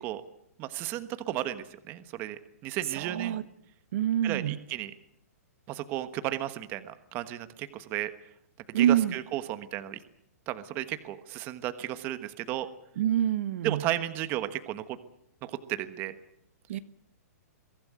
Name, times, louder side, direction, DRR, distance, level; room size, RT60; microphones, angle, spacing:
voice 1, 0.6-3.4 4.2-4.9 5.7-8.1 8.7-10.0 10.5-12.7 13.6-15.0 15.4-16.1, right 14 dB, 25° right, 11 dB, 1.2 m, -34 dB
voice 2, 2.9-3.4 3.9-4.6 8.7-9.1 13.0-13.8 16.7-16.8, right 11 dB, 55° right, 13 dB, 1.2 m, -26 dB
23.0 x 16.0 x 9.3 m, 0.74 s
hypercardioid pair, 170°, 9 cm